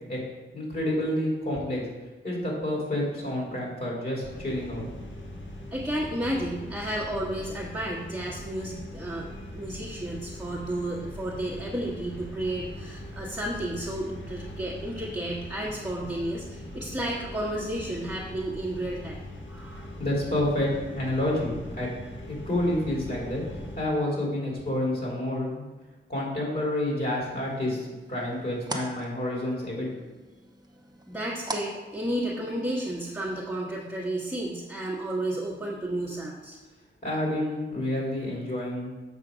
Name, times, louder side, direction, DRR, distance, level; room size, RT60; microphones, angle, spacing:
voice 1, 0.5-1.8 2.2-4.8 20.0-20.7 20.9-21.9 22.2-23.4 23.7-25.6 26.1-29.9 37.0-38.9, left 1 dB, 45° left, -4 dB, 2.9 m, -29 dB
sound 1, 4.2-23.8, left 1 dB, 65° left, 1.5 m, -41 dB
voice 2, 5.7-19.2 19.5-19.9 31.1-36.6, right 1 dB, 5° right, -8 dB, 1.4 m, -32 dB
sound 2, 27.3-32.7, right 2 dB, 20° right, 0.9 m, -42 dB
7.4 x 5.6 x 5.1 m, 1.2 s
wide cardioid pair, 105°, 21 cm